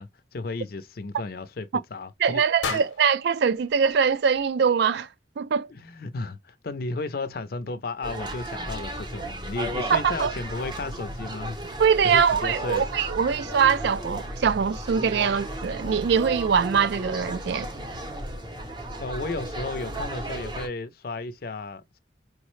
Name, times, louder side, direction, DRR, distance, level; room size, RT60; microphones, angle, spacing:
voice 1, 0.0-2.8 5.7-12.9 19.0-22.0, left 3 dB, 50° left, 0.5 m, -34 dB
voice 2, 2.2-5.1 5.4-5.7 9.9-10.3 11.8-17.7, right 6 dB, 60° right, 0.3 m, -23 dB
sound 1, 2.6-4.8, left 6 dB, 90° left, 0.7 m, -37 dB
sound 2, 8.0-20.7, right 1 dB, 25° right, 0.6 m, -35 dB
4.7 x 2.0 x 3.0 m
head